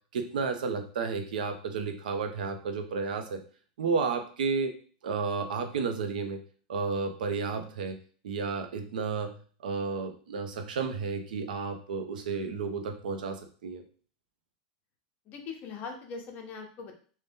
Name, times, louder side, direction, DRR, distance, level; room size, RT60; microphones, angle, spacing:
voice 1, 0.1-3.4 3.8-4.7 5.0-6.4 6.7-8.0 8.2-13.8, right 5 dB, 90° right, 6 dB, 0.6 m, -32 dB
voice 2, 15.3-16.9, left 5 dB, 40° left, 3 dB, 0.7 m, -41 dB
2.7 x 2.1 x 3.5 m, 0.41 s
supercardioid pair, 135°, 4 cm